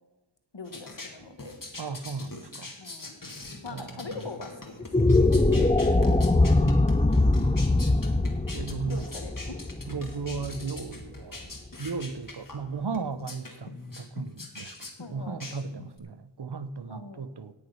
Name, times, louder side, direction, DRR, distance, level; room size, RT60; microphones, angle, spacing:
voice 1, 0.5-1.5 2.8-3.2 3.6-5.3 8.9-9.6 10.9-11.1 15.0-15.4 16.9-17.2, left 3 dB, 70° left, 6 dB, 1.6 m, -42 dB
sound 1, 0.6-16.0, left 2 dB, 45° left, 2.0 m, -43 dB
voice 2, 1.8-2.7 3.7-3.9 6.3-7.3 8.5-9.0 9.9-11.5 11.8-14.7 15.1-17.5, right 4 dB, 60° right, 13 dB, 0.8 m, -36 dB
sound 2, 4.8-11.2, left 2 dB, 15° left, 0.6 m, -23 dB
17.5 x 6.5 x 5.7 m, 1.2 s
wide cardioid pair, 40°, 46 cm